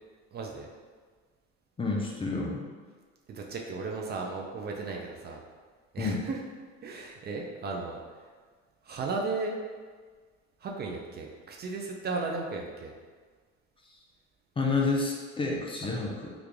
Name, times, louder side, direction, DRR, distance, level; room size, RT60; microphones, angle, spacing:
voice 1, 0.3-0.7 3.3-5.4 5.9-6.4 6.8-8.0 8.8-9.6 10.6-12.9, right 3 dB, 35° right, 0 dB, 0.4 m, -35 dB
voice 2, 1.8-2.6 6.0-6.2 14.6-16.3, left 3 dB, 20° left, -2 dB, 0.5 m, -29 dB
3.1 x 2.5 x 3.5 m, 1.5 s
supercardioid pair, 100°, 29 cm